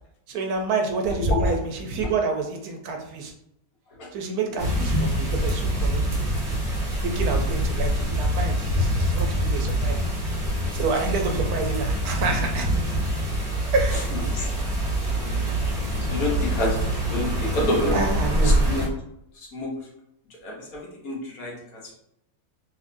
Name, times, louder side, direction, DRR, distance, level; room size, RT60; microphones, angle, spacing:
voice 1, 0.3-3.3 4.1-6.1 7.0-10.0 10.7-12.7 13.7-14.1 17.9-18.7, right 4 dB, 75° right, 3 dB, 1.1 m, -28 dB
voice 2, 1.2-1.5 2.0-2.1 4.0-4.1 14.1-14.5 16.1-18.1 18.4-18.9 19.4-19.7 20.4-21.8, left 1 dB, 65° left, -2 dB, 1.4 m, -27 dB
sound 1, 4.6-18.9, equal, 30° right, 0.9 m, -25 dB
4.0 x 2.6 x 2.6 m, 0.77 s
omnidirectional pair, 1.6 m